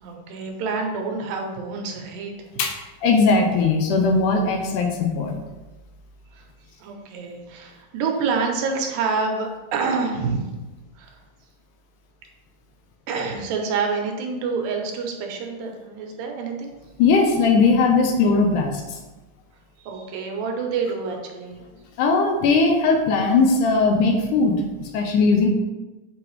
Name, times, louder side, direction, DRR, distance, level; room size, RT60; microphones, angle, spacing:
voice 1, 0.0-2.3 6.3-6.4 6.8-10.6 11.0-11.1 13.1-16.7 19.8-21.6, right 4 dB, 80° right, 2 dB, 2.6 m, -27 dB
voice 2, 3.0-5.3 17.0-19.0 22.0-24.5 24.9-25.5, left 4 dB, 80° left, 2 dB, 2.0 m, -19 dB
7.9 x 3.9 x 3.1 m, 1.1 s
omnidirectional pair, 4.0 m